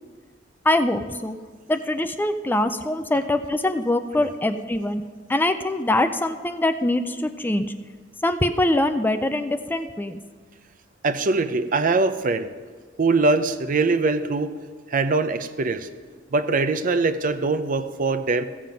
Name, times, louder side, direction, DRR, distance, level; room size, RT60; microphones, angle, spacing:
voice 1, 0.6-1.4 1.7-5.0 5.3-7.7 8.2-10.2, left 1 dB, 10° left, 9 dB, 0.4 m, -23 dB
voice 2, 11.0-12.5 13.0-14.6 14.9-15.9 16.3-18.4, right 3 dB, 45° right, 11 dB, 0.6 m, -22 dB
15.0 x 7.5 x 5.2 m, 1.5 s
head